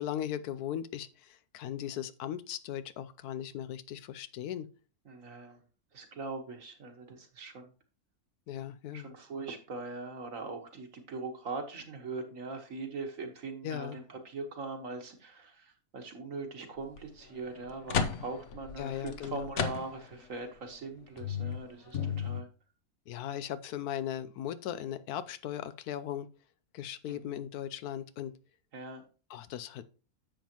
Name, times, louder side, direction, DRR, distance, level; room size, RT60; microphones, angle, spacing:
voice 1, 0.0-4.7 8.5-9.1 13.6-14.0 18.8-19.5 23.1-26.3 26.7-28.3 29.3-29.8, left 10 dB, 85° left, 1.1 m, -38 dB
voice 2, 5.1-5.6 5.9-7.7 8.9-22.5 27.1-27.4 28.7-29.0, right 3 dB, 60° right, 1.8 m, -41 dB
sound 1, 16.8-17.0 17.5-20.3 20.7-20.8 21.2-22.4, left 6 dB, 60° left, 1.0 m, -34 dB
10.0 x 7.2 x 3.0 m
omnidirectional pair, 1.6 m